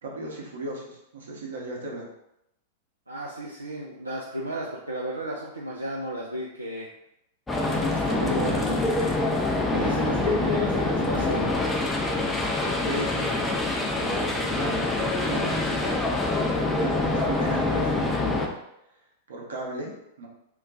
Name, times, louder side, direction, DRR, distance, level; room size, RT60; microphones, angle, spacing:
voice 1, 0.0-2.1 12.8-13.4 13.9-18.5 19.3-19.9 20.2-20.3, right 2 dB, 65° right, -2 dB, 0.7 m, -36 dB
voice 2, 3.1-6.9 7.6-9.2 9.6-11.6, right 1 dB, 85° right, -3 dB, 0.3 m, -34 dB
sound 1, 7.5-18.5, left 2 dB, 10° left, 0.4 m, -25 dB
2.3 x 2.2 x 3.9 m, 0.82 s
figure-of-eight pair, 95°, 0 cm